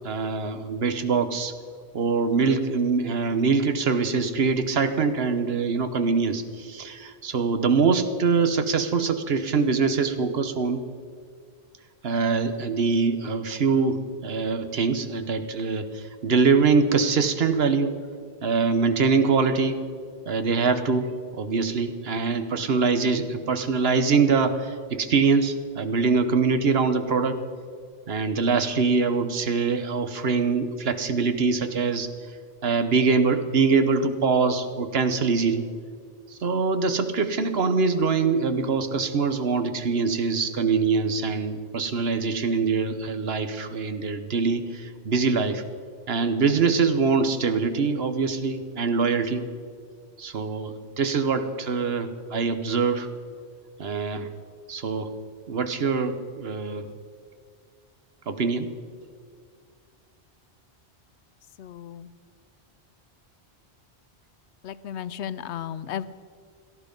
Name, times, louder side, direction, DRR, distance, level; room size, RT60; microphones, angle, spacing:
voice 1, 0.0-1.5 1.9-10.8 12.0-18.0 18.4-19.8 20.3-27.4 28.1-32.1 32.6-35.7 36.3-45.6 46.1-49.4 50.2-53.1 53.8-54.3 54.7-55.1 55.5-56.9 58.3-58.7, right 4 dB, 70° right, 10 dB, 1.2 m, -24 dB
voice 2, 61.6-62.1 64.6-66.0, left 9 dB, 90° left, 16 dB, 0.9 m, -34 dB
17.0 x 13.5 x 5.3 m, 2.1 s
omnidirectional pair, 1.1 m